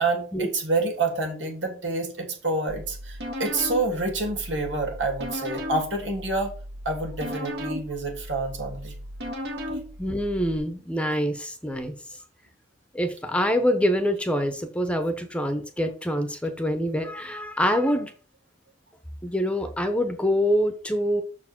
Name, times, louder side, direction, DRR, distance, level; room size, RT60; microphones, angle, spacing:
voice 1, 0.0-6.5 6.8-8.9, right 3 dB, 90° right, 3 dB, 2.9 m, -28 dB
sound 1, 2.7-10.6, equal, 65° right, 2.1 m, -36 dB
voice 2, 10.0-11.9 12.9-18.1 19.2-21.2, equal, 5° left, 8 dB, 0.9 m, -25 dB
6.6 x 4.7 x 6.1 m, 0.39 s
head